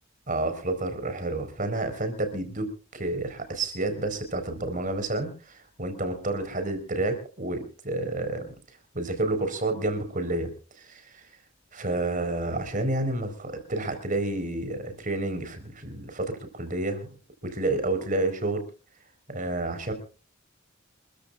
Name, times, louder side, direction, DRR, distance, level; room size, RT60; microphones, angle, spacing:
voice 1, 0.3-2.7 2.9-8.5 8.9-10.5 10.8-11.3 11.7-17.2 17.4-18.6 19.3-19.9, right 2 dB, 40° right, 8 dB, 4.4 m, -30 dB
27.0 x 14.5 x 2.5 m, 0.36 s
head